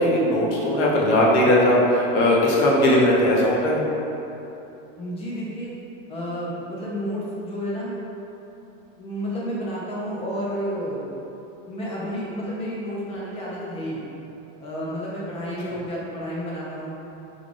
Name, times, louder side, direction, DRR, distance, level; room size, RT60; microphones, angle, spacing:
voice 1, 0.0-3.9, left 1 dB, 60° left, -4 dB, 0.9 m, -19 dB
voice 2, 5.0-5.7 6.1-7.9 9.0-11.1 11.7-14.0 14.6-16.9, equal, 15° left, -6 dB, 0.5 m, -31 dB
3.8 x 2.3 x 3.3 m, 3.0 s
supercardioid pair, 145°, 39 cm